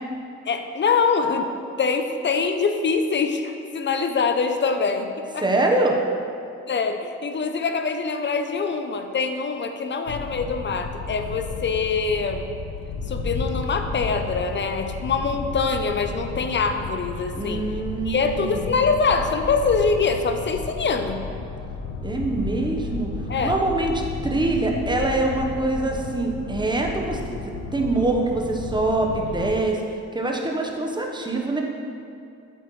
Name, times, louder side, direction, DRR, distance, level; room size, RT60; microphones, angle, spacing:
voice 1, 0.5-1.5 1.8-5.1 5.3-5.4 6.7-12.4 13.1-17.7 18.0-21.2 23.3-23.6, left 4 dB, 40° left, 6 dB, 0.7 m, -24 dB
voice 2, 5.4-5.9 17.3-18.7 22.0-23.1 23.4-29.8 30.1-31.6, right 2 dB, 15° right, 1 dB, 1.1 m, -24 dB
sound 1, 10.1-29.6, left 4 dB, 85° left, 0.8 m, -33 dB
8.7 x 8.0 x 3.2 m, 2.5 s
cardioid pair, 90°, 30 cm